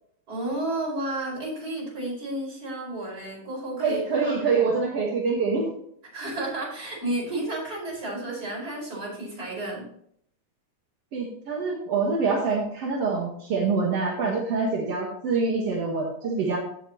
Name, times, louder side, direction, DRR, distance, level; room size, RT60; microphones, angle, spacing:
voice 1, 0.3-4.8 6.1-9.8, right 1 dB, 25° right, -5 dB, 5.3 m, -32 dB
voice 2, 3.8-5.6 11.1-16.6, right 4 dB, 55° right, -3 dB, 1.9 m, -25 dB
16.0 x 6.7 x 3.0 m, 0.67 s
omnidirectional pair, 4.4 m